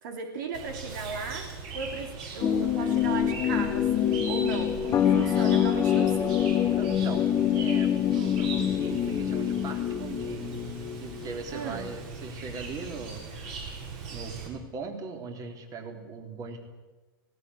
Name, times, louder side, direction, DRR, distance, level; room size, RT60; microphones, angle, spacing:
voice 1, 0.0-6.4 11.5-11.9, right 5 dB, 60° right, 5 dB, 2.9 m, -36 dB
Chirp tweet, 0.5-14.5, right 4 dB, 45° right, 7.1 m, -40 dB
sound 1, 2.4-11.3, left 9 dB, 25° left, 1.3 m, -25 dB
voice 2, 6.7-7.3 7.5-10.5 11.0-13.2 14.1-16.6, right 4 dB, 30° right, 5 dB, 3.6 m, -39 dB
18.5 x 17.5 x 9.7 m, 1.2 s
hypercardioid pair, 115°, 12 cm